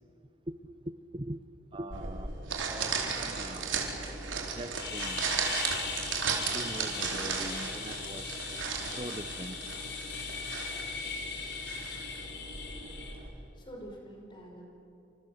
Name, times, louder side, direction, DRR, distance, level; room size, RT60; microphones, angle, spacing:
voice 1, 1.7-2.3 2.7-3.8 4.5-5.7 6.5-8.4 8.9-9.6, right 1 dB, 25° right, 10 dB, 0.7 m, -42 dB
sound 1, 1.9-13.3, right 5 dB, 85° right, 4.4 m, -35 dB
sound 2, 4.8-13.1, left 5 dB, 65° left, 4.4 m, -39 dB
voice 2, 13.2-14.7, equal, 25° left, 0 dB, 5.7 m, -47 dB
28.5 x 26.5 x 7.9 m, 2.8 s
head